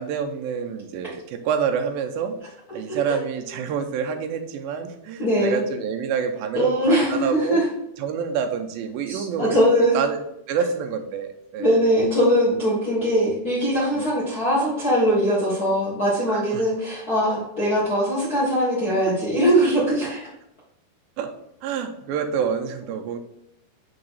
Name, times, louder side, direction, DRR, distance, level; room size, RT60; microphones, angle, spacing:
voice 1, 0.0-2.4 2.7-7.6 8.0-10.2 10.5-11.7 14.0-14.1 16.3-16.6 19.6-19.7 21.2-21.3 21.6-23.2, right 7 dB, 80° right, 4 dB, 2.4 m, -27 dB
voice 2, 5.2-5.7 6.5-7.7 9.1-9.9 11.6-20.3 22.4-22.5, equal, 80° left, -7 dB, 0.8 m, -21 dB
6.5 x 2.9 x 5.4 m, 0.81 s
omnidirectional pair, 4.3 m